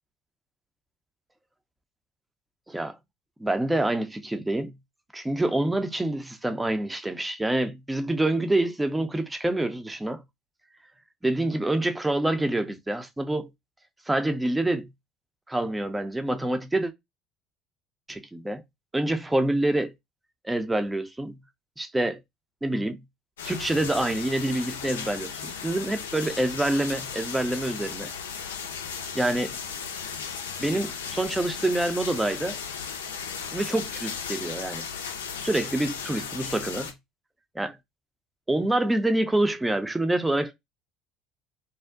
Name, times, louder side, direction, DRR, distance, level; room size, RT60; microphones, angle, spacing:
voice 1, 3.4-4.7 5.1-10.2 11.2-13.5 14.1-14.9 15.5-16.9 18.1-18.6 18.9-19.9 20.4-21.4 21.8-22.2 22.6-23.0 23.4-28.1 29.1-29.6 30.6-32.6 33.5-34.9 35.4-36.9 37.6-37.8 38.5-40.5, right 1 dB, 10° right, 0.5 m, -26 dB
sound 1, 23.4-36.9, left 6 dB, 85° left, 0.4 m, -36 dB
2.5 x 2.1 x 2.4 m
hypercardioid pair, 65°, 0 cm